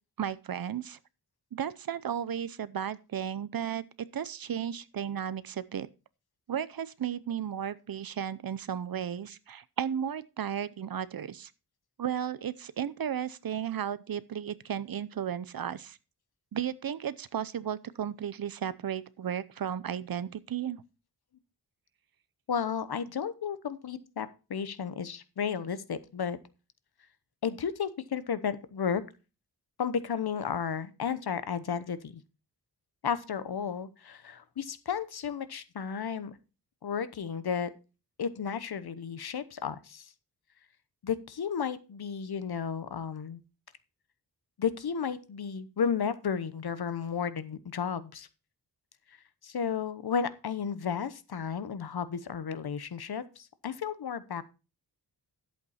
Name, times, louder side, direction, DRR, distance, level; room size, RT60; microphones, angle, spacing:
voice 1, 0.2-1.0 1.5-3.8 4.1-5.9 6.5-11.5 12.0-16.0 16.5-20.8, right 9 dB, 55° right, 0.7 m, -34 dB
voice 2, 22.5-26.4 27.4-29.0 29.8-32.1 33.0-36.3 36.8-37.7 38.2-40.1 41.0-43.4 44.6-48.3 49.4-54.4, left 7 dB, 65° left, 1.0 m, -33 dB
11.0 x 8.1 x 4.2 m
wide cardioid pair, 110°, 41 cm